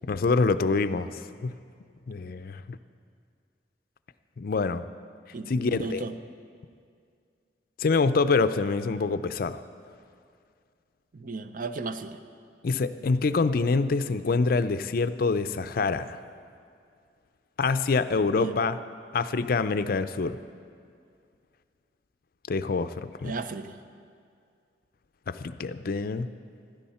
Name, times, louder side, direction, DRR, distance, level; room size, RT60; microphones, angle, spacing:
voice 1, 0.0-1.6 2.1-2.8 4.4-4.8 5.5-6.0 7.8-9.6 12.6-16.2 17.6-18.8 19.1-20.4 22.5-23.4 25.3-26.3, left 4 dB, 55° left, 12 dB, 0.4 m, -26 dB
voice 2, 5.3-6.1 11.1-12.2 18.4-18.6 23.2-23.8, right 3 dB, 50° right, 10 dB, 0.6 m, -35 dB
15.5 x 12.0 x 4.3 m, 2.3 s
head